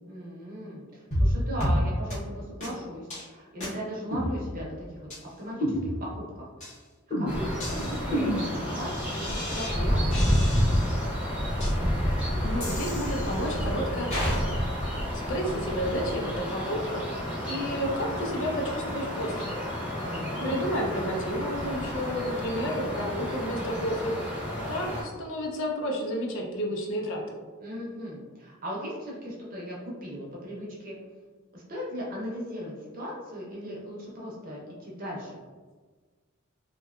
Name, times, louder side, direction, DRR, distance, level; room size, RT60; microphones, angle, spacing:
voice 1, 0.1-6.5 7.2-10.5 19.9-20.6 27.6-30.9 31.5-35.3, equal, 45° right, -4 dB, 0.6 m, -38 dB
sound 1, 1.1-1.3 1.6-1.8 2.1-2.2 2.6-2.7 3.1-3.3 3.6-3.7 4.1-4.7 5.1-5.2 5.6-6.2 6.6-6.8 7.1-9.7 10.1-11.0 11.6-11.7 12.6-13.6 14.1-14.4, equal, 35° left, 0.8 m, -31 dB
sound 2, 7.3-25.0, equal, 5° right, 0.6 m, -30 dB
voice 2, 12.4-14.5 15.3-17.0 17.4-19.5 20.4-24.1 24.7-27.2, equal, 65° left, 0 dB, 0.5 m, -31 dB
2.7 x 2.2 x 2.3 m, 1.4 s
head